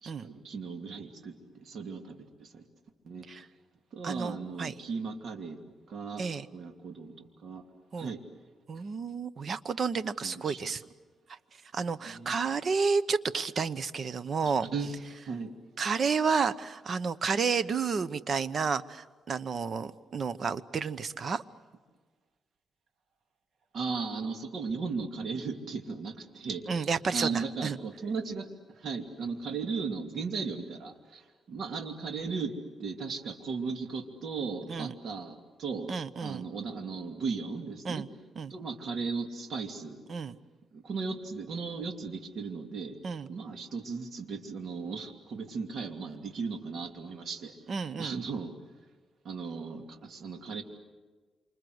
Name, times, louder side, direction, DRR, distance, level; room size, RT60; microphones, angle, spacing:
voice 1, 0.0-2.6 3.0-3.3 3.9-5.6 5.9-6.2 6.5-7.6 8.0-8.2 10.2-10.6 12.0-12.4 14.4-14.9 15.2-15.6 23.7-32.5 32.8-35.9 36.2-38.0 38.5-40.0 40.7-42.9 43.3-47.5 48.0-48.5 49.2-50.6, right 4 dB, 60° right, 5 dB, 2.7 m, -36 dB
voice 2, 4.0-4.7 6.2-6.5 7.9-8.1 8.7-10.8 11.3-11.4 11.7-14.7 15.8-21.4 26.7-27.8 34.7-34.9 35.9-36.5 37.8-38.1 38.4-38.5 40.1-40.4 43.0-43.3 47.7-48.2, right 5 dB, 45° right, 15 dB, 0.9 m, -31 dB
27.5 x 26.0 x 8.0 m, 1.4 s
cardioid pair, 115°, 0 cm